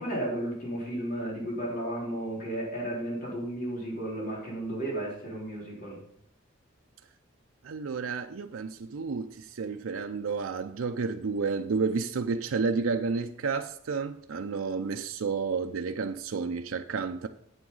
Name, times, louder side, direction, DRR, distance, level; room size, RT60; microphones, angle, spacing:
voice 1, 0.0-6.0, right 1 dB, 45° left, 3.9 m, -33 dB
voice 2, 7.6-17.3, right 4 dB, 85° right, 0.5 m, -31 dB
8.9 x 7.8 x 3.9 m
head